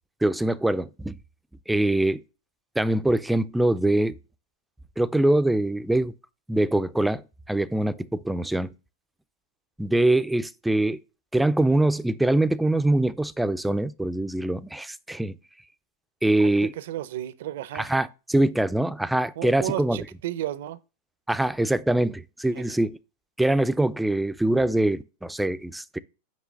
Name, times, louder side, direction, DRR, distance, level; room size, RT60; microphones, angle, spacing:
voice 1, 0.2-1.1 1.7-2.2 2.8-4.1 5.0-6.1 6.5-7.2 7.5-8.7 9.8-11.0 11.3-15.4 16.2-16.7 17.7-20.0 21.3-23.0 23.4-26.0, right 1 dB, 5° right, 0.4 m, -23 dB
voice 2, 16.6-17.9 19.4-20.8 22.5-22.8, right 13 dB, 70° right, 0.6 m, -33 dB
7.4 x 3.2 x 6.3 m
supercardioid pair, 140°, 0 cm